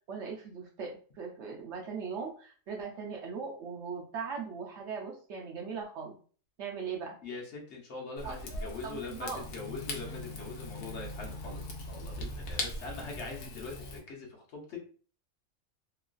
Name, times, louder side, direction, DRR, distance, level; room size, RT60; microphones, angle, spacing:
voice 1, 0.1-6.2 6.6-7.2 8.2-8.4 8.8-9.5, right 5 dB, 65° right, 0 dB, 0.8 m, -39 dB
voice 2, 7.2-14.8, left 3 dB, 60° left, 0 dB, 1.0 m, -42 dB
Rain / Fire, 8.2-14.0, left 2 dB, 90° left, 1.1 m, -40 dB
3.0 x 2.3 x 2.4 m, 0.41 s
omnidirectional pair, 1.4 m